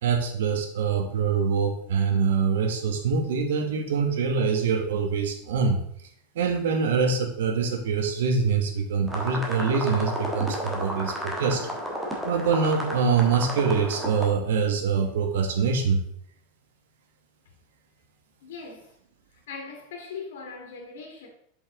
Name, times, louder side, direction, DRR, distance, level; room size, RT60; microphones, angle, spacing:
voice 1, 0.0-5.8 6.3-11.7 12.2-16.0, right 5 dB, 90° right, 1.4 m, -24 dB
sound 1, 9.1-14.3, equal, 5° right, 1.3 m, -32 dB
voice 2, 18.4-18.9 19.3-21.3, left 5 dB, 80° left, 2.0 m, -40 dB
7.2 x 5.3 x 3.7 m
supercardioid pair, 160°, 0 cm